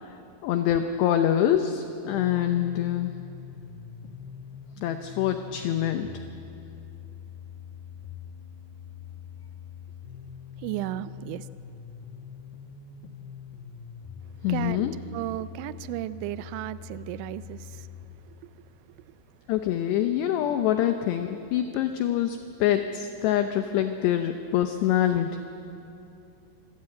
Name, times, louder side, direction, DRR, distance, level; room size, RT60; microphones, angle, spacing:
voice 1, 0.4-3.1 4.8-6.1 14.4-14.9 19.5-25.3, left 11 dB, 85° left, 7 dB, 2.4 m, -25 dB
sound 1, 2.0-18.0, left 7 dB, 70° left, 2.7 m, -44 dB
voice 2, 10.6-11.5 14.5-17.9 18.4-18.5, right 15 dB, 85° right, 15 dB, 2.7 m, -34 dB
25.5 x 15.5 x 8.6 m, 2.9 s
omnidirectional pair, 5.9 m